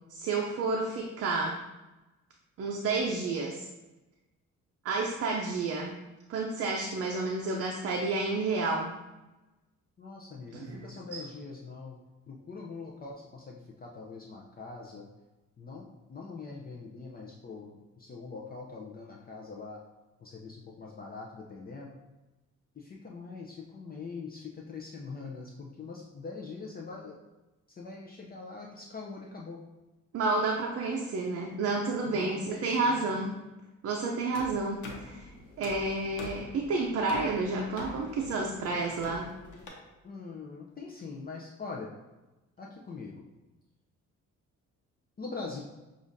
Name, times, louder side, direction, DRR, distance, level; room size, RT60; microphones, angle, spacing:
voice 1, 0.1-1.6 2.6-3.7 4.8-5.9 6.3-8.9 10.5-11.2 30.1-33.3 33.8-35.3 35.6-39.3, right 3 dB, 55° right, 0 dB, 0.6 m, -30 dB
voice 2, 10.0-12.0 12.3-15.1 15.6-19.8 20.2-22.0 22.7-27.2 27.7-29.6 32.1-33.2 40.0-41.9 42.6-43.2 45.2-45.6, left 4 dB, 30° left, -2 dB, 0.5 m, -43 dB
sound 1, 34.3-39.7, left 2 dB, 80° left, 0.9 m, -45 dB
6.8 x 2.5 x 2.6 m, 1.1 s
cardioid pair, 90°, 30 cm